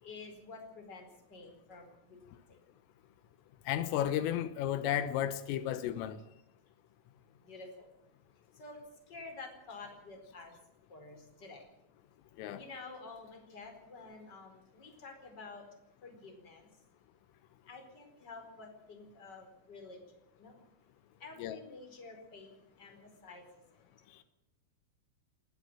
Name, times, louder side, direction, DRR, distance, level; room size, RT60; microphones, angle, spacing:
voice 1, 0.0-2.2 7.4-7.9 8.6-8.8 9.1-10.5 10.9-11.6 12.5-15.6 16.0-16.7 17.7-20.0 20.4-20.5 21.2-22.5 22.8-23.4, left 3 dB, 20° left, 4.6 m, -49 dB
voice 2, 3.7-6.2 12.4-12.6 21.4-21.6, left 11 dB, 85° left, 3.6 m, -33 dB
20.0 x 14.5 x 9.0 m
omnidirectional pair, 5.9 m